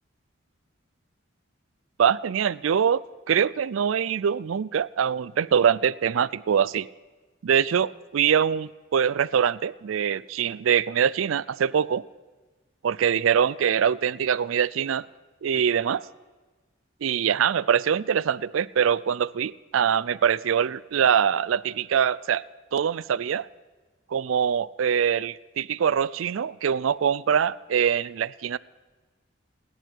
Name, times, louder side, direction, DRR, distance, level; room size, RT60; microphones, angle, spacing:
voice 1, 2.0-6.9 7.4-12.0 12.8-15.1 15.4-16.0 17.0-22.4 22.7-23.5 24.1-28.6, right 8 dB, 90° right, 19 dB, 0.4 m, -23 dB
29.0 x 11.0 x 4.5 m, 1.3 s
head